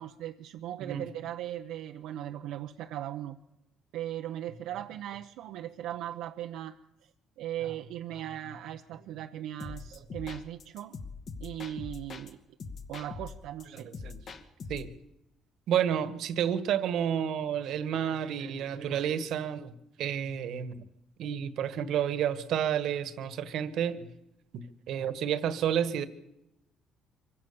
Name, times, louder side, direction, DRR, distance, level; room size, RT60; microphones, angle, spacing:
voice 1, 0.0-3.4 3.9-6.8 7.0-7.1 7.4-10.9 11.4-12.4 12.9-13.9, right 12 dB, 85° right, 4 dB, 0.9 m, -38 dB
sound 1, 9.6-12.3 12.6-14.9, left 4 dB, 50° left, 2.4 m, -42 dB
voice 2, 13.7-14.2 14.7-14.9 15.7-20.8 21.2-24.1 24.5-26.1, right 9 dB, 70° right, 13 dB, 1.6 m, -30 dB
24.5 x 16.0 x 7.1 m, 0.90 s
cardioid pair, 115°, 0 cm